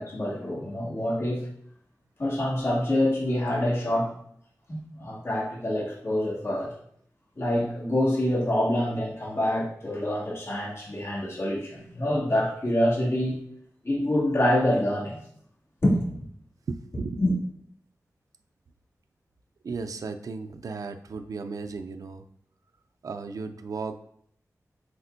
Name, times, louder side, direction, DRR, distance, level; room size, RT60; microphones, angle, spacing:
voice 1, 0.0-1.5 2.2-4.2 4.7-6.7 7.4-13.4 13.8-15.2 15.8-16.2 17.2-17.3, left 1 dB, 45° left, -7 dB, 2.3 m, -26 dB
voice 2, 16.7-17.2 19.6-22.2 23.0-24.0, right 4 dB, 75° right, 8 dB, 0.4 m, -35 dB
8.4 x 4.3 x 2.6 m, 0.68 s
wide cardioid pair, 80°, 6 cm